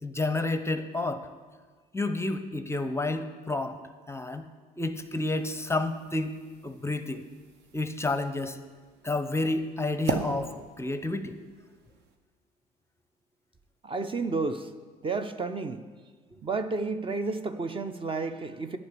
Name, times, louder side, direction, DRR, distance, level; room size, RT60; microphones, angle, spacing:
voice 1, 0.0-1.3 1.9-3.8 4.1-4.5 4.8-6.4 6.6-7.2 7.7-8.6 9.0-11.4, left 2 dB, 15° left, 10 dB, 0.7 m, -30 dB
sound 1, 4.9-12.2, right 5 dB, 60° right, 1.1 m, -40 dB
voice 2, 13.8-14.7 15.0-15.9 16.4-18.8, right 3 dB, 25° right, 10 dB, 0.7 m, -31 dB
10.5 x 5.3 x 8.5 m, 1.5 s
hypercardioid pair, 60°, 20 cm